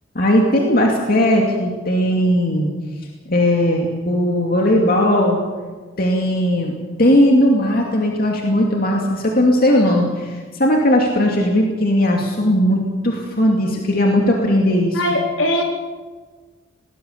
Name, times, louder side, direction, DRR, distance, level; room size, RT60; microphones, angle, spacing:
voice 1, 0.1-2.7 3.3-5.4 6.0-6.7 7.0-15.0, left 1 dB, 50° left, 0 dB, 2.5 m, -17 dB
voice 2, 14.9-15.6, left 1 dB, 75° left, 1 dB, 4.2 m, -20 dB
20.5 x 19.0 x 6.8 m, 1.4 s
head